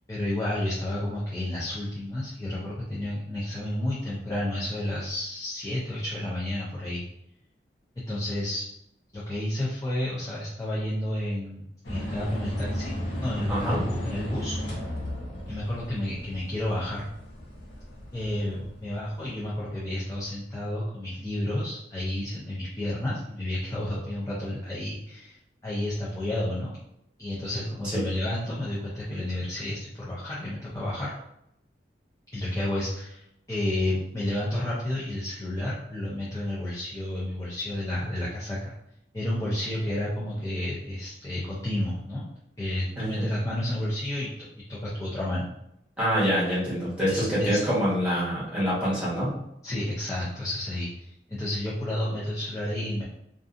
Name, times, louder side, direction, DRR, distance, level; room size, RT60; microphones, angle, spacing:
voice 1, 0.1-7.0 8.0-8.7 9.1-12.9 13.2-14.6 15.5-17.1 18.1-25.4 25.6-26.7 27.2-31.1 32.3-38.7 39.1-42.3 42.6-44.3 44.7-45.5 47.1-47.6 49.6-53.0, left 1 dB, 15° left, -8 dB, 0.4 m, -31 dB
sound 1, 11.8-19.9, equal, 75° left, 0.8 m, -35 dB
voice 2, 13.5-13.8 27.9-28.0 43.0-43.2 46.0-49.4, equal, 5° right, -10 dB, 1.1 m, -26 dB
2.6 x 2.4 x 2.4 m, 0.80 s
head